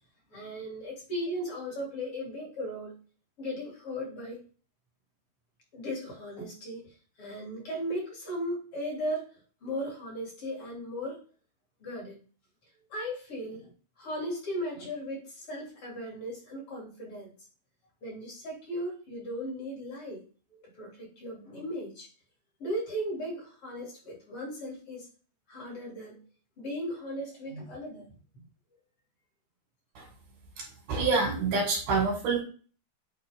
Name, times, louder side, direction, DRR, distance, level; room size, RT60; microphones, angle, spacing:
voice 1, 0.3-2.9 3.4-4.4 5.7-9.3 9.6-11.2 11.8-12.2 12.9-13.7 14.0-17.3 18.0-20.2 20.5-22.1 22.6-25.1 25.5-26.2 26.6-28.1 28.3-28.5, equal, 40° left, -3 dB, 3.7 m, -37 dB
voice 2, 30.6-32.4, right 4 dB, 70° right, -1 dB, 3.5 m, -27 dB
9.0 x 4.2 x 3.6 m, 0.39 s
omnidirectional pair, 3.8 m